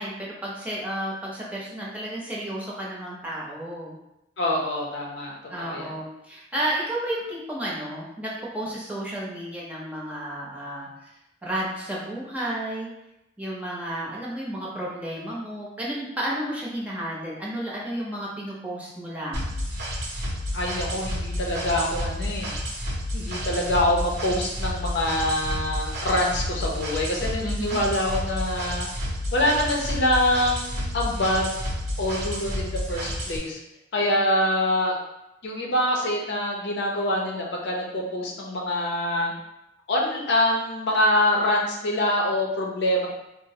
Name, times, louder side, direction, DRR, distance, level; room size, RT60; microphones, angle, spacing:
voice 1, 0.0-4.0 5.5-10.9 11.4-12.9 13.4-19.6 27.4-27.8, right 1 dB, 10° right, -6 dB, 0.8 m, -32 dB
voice 2, 4.4-5.9 20.5-22.5 23.1-28.9 29.3-31.6 32.0-33.6 33.9-35.0 35.4-39.3 39.9-43.1, left 1 dB, 65° left, -1 dB, 0.6 m, -25 dB
sound 1, 19.3-33.4, equal, 55° right, 0.8 m, -30 dB
4.1 x 2.0 x 2.8 m, 0.89 s
head